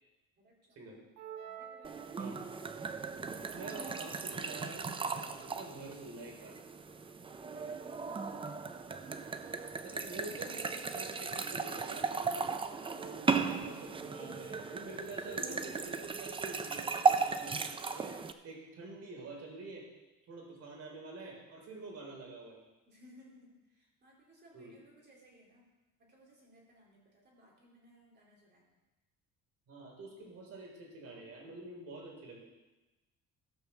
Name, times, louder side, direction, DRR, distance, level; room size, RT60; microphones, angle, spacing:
voice 1, 0.4-1.1 1.4-2.4 7.4-8.9 22.9-25.7 26.0-28.8, equal, 30° right, -4 dB, 3.9 m, -62 dB
sound 1, 1.2-2.8, right 9 dB, 85° right, 1.2 m, -48 dB
sound 2, 1.8-18.3, right 5 dB, 15° right, 0.4 m, -36 dB
voice 2, 3.5-6.6 9.8-12.5 12.9-19.9 20.3-22.6 24.5-24.8 29.7-32.5, right 2 dB, 50° right, 0 dB, 3.9 m, -47 dB
14.5 x 5.8 x 7.1 m, 1.1 s
cardioid pair, 145°, 32 cm